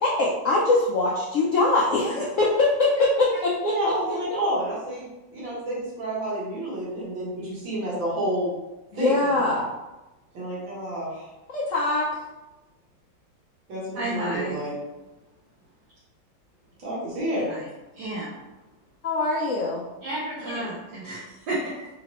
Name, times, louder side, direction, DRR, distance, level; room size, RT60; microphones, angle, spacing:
voice 1, 0.0-3.7 8.9-9.7 11.5-12.1 19.0-19.8, left 2 dB, 75° left, -4 dB, 0.7 m, -22 dB
voice 2, 3.6-8.5 8.9-9.1 10.3-11.3 13.7-14.7 16.8-17.5, right 1 dB, 80° right, -7 dB, 2.1 m, -29 dB
voice 3, 13.9-14.7 17.5-17.6 18.0-18.4 20.0-21.9, right 1 dB, 65° right, -8 dB, 1.4 m, -32 dB
4.0 x 3.0 x 2.9 m, 1.0 s
omnidirectional pair, 2.0 m